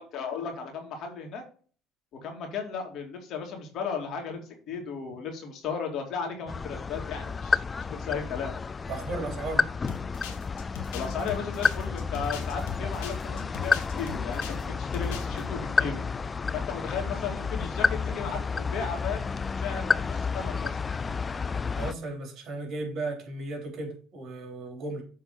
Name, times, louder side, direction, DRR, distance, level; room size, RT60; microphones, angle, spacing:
voice 1, 0.0-1.4 2.2-8.5 10.9-16.0 16.5-20.8, left 6 dB, 60° left, 2.5 m, -35 dB
sound 1, 6.5-21.9, left 5 dB, 25° left, 0.3 m, -30 dB
voice 2, 8.9-9.7 21.8-25.0, right 2 dB, 45° right, 3.5 m, -35 dB
sound 2, 9.9-14.6 14.9-15.4, left 10 dB, 90° left, 1.7 m, -40 dB
7.3 x 3.7 x 5.7 m
supercardioid pair, 100°, 0 cm